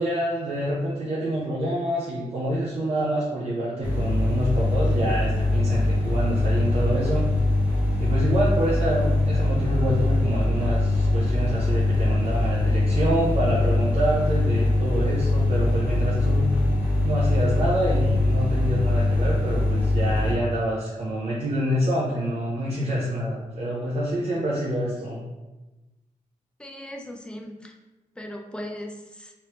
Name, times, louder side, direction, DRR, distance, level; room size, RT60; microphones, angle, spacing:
voice 1, 0.0-7.2 8.0-16.6 17.0-25.2, right 1 dB, 50° right, -6 dB, 0.7 m, -27 dB
sound 1, 3.8-20.3, left 1 dB, 15° right, 1.0 m, -23 dB
sound 2, 4.5-20.2, left 6 dB, 90° left, 0.6 m, -34 dB
voice 2, 26.6-27.8 28.2-29.3, left 1 dB, 5° left, 1 dB, 0.5 m, -38 dB
3.3 x 3.2 x 2.9 m, 1.1 s
wide cardioid pair, 115°, 14 cm